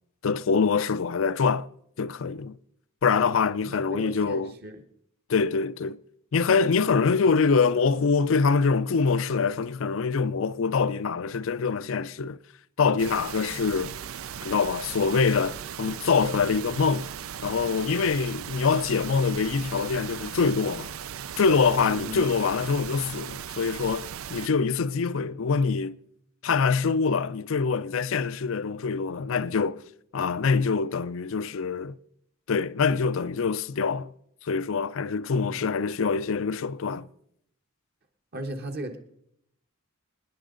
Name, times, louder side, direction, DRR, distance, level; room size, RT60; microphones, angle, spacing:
voice 1, 0.2-1.7 2.0-2.6 3.0-4.5 5.3-6.0 6.3-12.4 12.8-14.0 14.4-17.1 17.4-20.9 21.4-26.0 26.4-29.8 30.1-32.0 32.5-34.1 34.4-37.1, left 5 dB, 65° left, 0.5 m, -24 dB
voice 2, 3.7-4.8 6.7-6.9 21.8-22.2 35.3-35.6 38.3-39.0, right 1 dB, 50° right, 1.3 m, -37 dB
sound 1, 13.0-24.5, right 9 dB, 85° right, 0.5 m, -38 dB
25.0 x 10.0 x 3.9 m
head